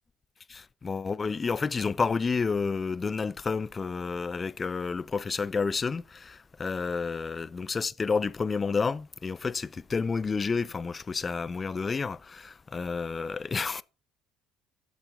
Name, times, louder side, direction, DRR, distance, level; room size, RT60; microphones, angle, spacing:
voice 1, 0.5-13.8, left 4 dB, 30° left, 0.5 m, -30 dB
7.5 x 7.3 x 3.5 m
supercardioid pair, 90°, 0 cm